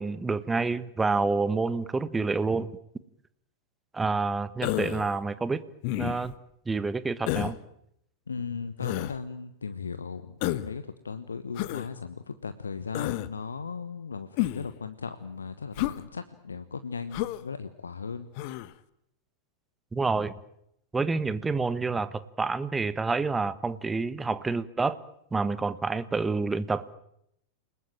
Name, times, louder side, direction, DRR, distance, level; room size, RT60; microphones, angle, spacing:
voice 1, 0.0-2.7 3.9-5.6 6.0-6.3 6.7-7.6 19.9-20.3 20.9-25.0 25.3-26.9, right 4 dB, 10° right, 15 dB, 1.3 m, -28 dB
Human voice, 4.6-5.1 5.8-6.3 7.3-7.6 8.8-9.1 10.4-10.7 11.6-11.9 12.9-13.3 14.4-14.7 15.8-16.0 17.1-17.4 18.4-18.7, left 16 dB, 45° left, 1.2 m, -30 dB
voice 2, 8.3-18.3, left 5 dB, 75° left, 12 dB, 1.1 m, -37 dB
29.0 x 19.5 x 9.0 m, 0.77 s
figure-of-eight pair, 90°, 0 cm